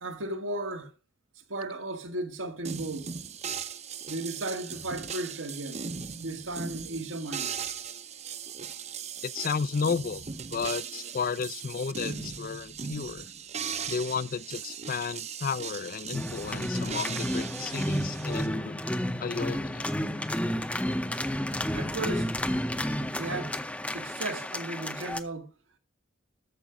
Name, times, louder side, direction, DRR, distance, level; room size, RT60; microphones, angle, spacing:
voice 1, 0.0-0.9 1.5-3.2 4.1-5.8 6.2-7.6 21.7-22.3 23.2-23.6 23.9-25.5, right 2 dB, 90° right, 1.7 m, -35 dB
sound 1, 2.6-18.5, right 6 dB, 35° right, 0.7 m, -38 dB
voice 2, 9.2-13.3 13.9-18.8 19.2-19.9, left 5 dB, 45° left, 0.4 m, -33 dB
sound 2, 16.1-25.2, equal, 5° left, 0.6 m, -31 dB
13.5 x 5.1 x 5.8 m
head